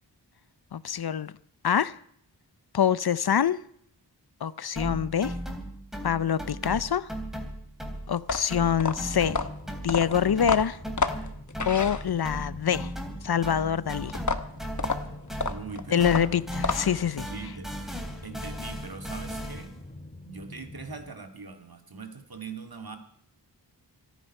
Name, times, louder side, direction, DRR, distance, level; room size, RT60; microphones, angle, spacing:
voice 1, 0.7-1.3 1.6-2.0 2.7-3.6 4.4-5.3 6.0-7.1 8.1-9.4 9.8-10.8 11.7-12.9 13.2-14.1 15.9-17.3, left 8 dB, 60° left, 0.6 m, -25 dB
sound 1, 4.8-8.2 8.5-15.7 16.0-19.8, equal, ahead, 3.4 m, -37 dB
sound 2, 8.2-12.5 14.1-17.1, left 4 dB, 45° left, 1.0 m, -30 dB
sound 3, 9.0-21.1, left 2 dB, 20° left, 2.0 m, -46 dB
voice 2, 15.5-16.4 17.3-17.7 18.2-19.8 20.3-23.0, right 4 dB, 55° right, 2.1 m, -41 dB
24.5 x 9.4 x 5.5 m
wide cardioid pair, 60°, 42 cm